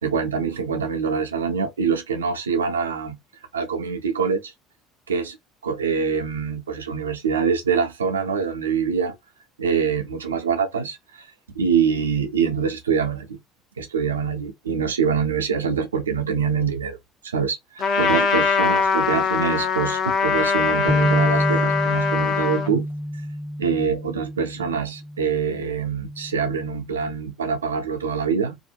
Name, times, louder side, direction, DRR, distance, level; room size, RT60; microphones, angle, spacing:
voice 1, 0.0-3.2 3.5-4.5 5.1-5.4 5.6-9.2 9.6-11.3 11.5-13.4 13.8-17.0 17.2-22.9 23.6-28.6, right 6 dB, 85° right, 0.4 m, -24 dB
Trumpet, 17.8-22.7, left 5 dB, 55° left, 0.5 m, -22 dB
sound 1, 20.9-27.1, equal, 10° left, 0.6 m, -28 dB
2.5 x 2.1 x 2.8 m
hypercardioid pair, 60°, 0 cm